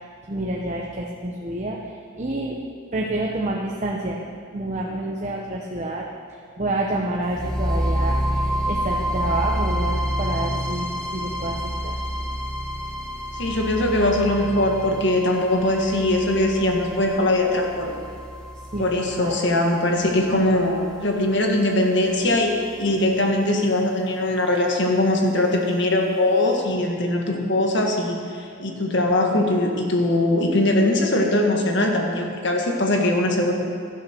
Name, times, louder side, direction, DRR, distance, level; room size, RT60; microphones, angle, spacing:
voice 1, 0.3-2.6 2.9-4.2 4.5-6.1 6.6-11.6 11.8-11.9 18.7-19.4, right 2 dB, 35° right, -1 dB, 0.9 m, -28 dB
sound 1, 7.3-21.3, equal, 5° left, 1.1 m, -28 dB
voice 2, 13.3-17.9 18.8-33.5, left 1 dB, 60° left, 1 dB, 1.7 m, -21 dB
16.5 x 12.0 x 4.5 m, 2.4 s
head